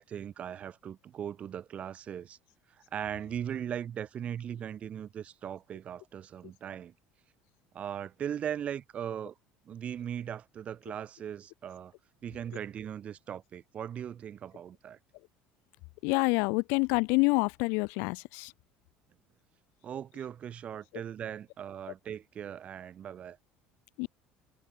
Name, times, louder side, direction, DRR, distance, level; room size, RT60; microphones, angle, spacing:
voice 1, 0.0-2.4 2.9-6.9 7.7-9.3 9.6-11.9 12.2-15.0 19.8-23.4, right 9 dB, 30° right, 6.7 m, -39 dB
voice 2, 16.0-18.5 24.0-24.1, left 32 dB, 75° left, 2.6 m, -27 dB
cardioid pair, 155°, 4 cm